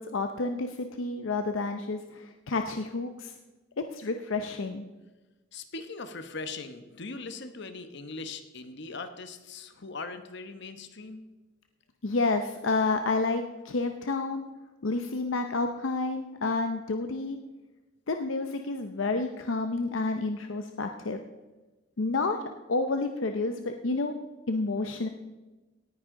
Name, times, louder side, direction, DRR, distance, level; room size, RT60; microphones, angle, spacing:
voice 1, 0.0-3.3 3.9-4.8 12.0-14.4 14.8-17.4 18.1-21.2 22.0-22.4 22.7-24.2 24.5-25.1, left 3 dB, 75° left, 6 dB, 0.7 m, -30 dB
voice 2, 5.5-11.3, left 3 dB, 60° left, 9 dB, 1.0 m, -40 dB
18.0 x 9.8 x 3.8 m, 1.1 s
head